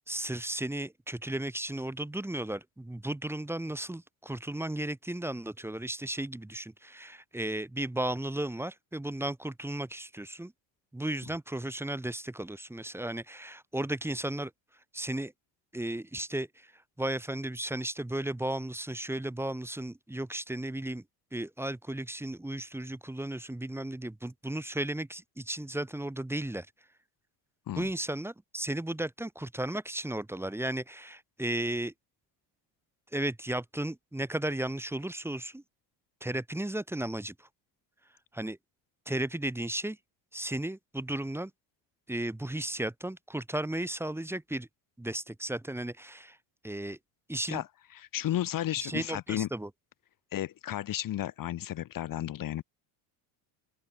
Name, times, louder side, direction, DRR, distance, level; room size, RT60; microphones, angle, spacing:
voice 1, 0.1-10.5 10.9-14.5 14.9-15.3 15.7-16.7 17.0-21.0 21.3-26.7 27.8-31.9 33.1-35.6 36.2-37.3 38.3-38.6 39.1-40.0 40.3-41.5 42.1-44.7 45.0-46.4 46.6-47.0 47.3-47.6 48.8-49.7, right 1 dB, 5° right, 2.6 m, -34 dB
voice 2, 47.9-49.5 50.3-52.6, left 12 dB, 40° left, 1.9 m, -33 dB
open air
cardioid pair, 130°, 48 cm